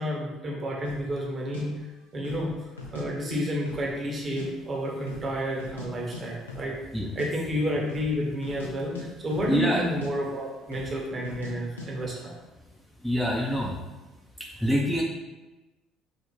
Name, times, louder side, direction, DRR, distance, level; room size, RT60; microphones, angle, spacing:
voice 1, 0.0-1.7 2.1-2.5 2.9-6.8 7.2-12.3, equal, 35° right, -2 dB, 0.7 m, -30 dB
sound 1, 0.8-1.1 1.5-1.6 2.2-2.5 2.8-3.4 3.7-4.5 4.7-4.8 5.1-5.9 6.1-6.2 6.5-6.7 7.0-7.3 7.8-8.1 8.4-8.7 8.9-9.7 10.0-10.1 10.7-10.9 11.2-11.5 11.8-11.9, left 3 dB, 85° left, 0.3 m, -40 dB
voice 2, 9.5-9.8 13.0-14.0 14.4-15.0, equal, ahead, -2 dB, 0.3 m, -26 dB
2.5 x 2.0 x 3.0 m, 1.1 s
figure-of-eight pair, 55°, 0 cm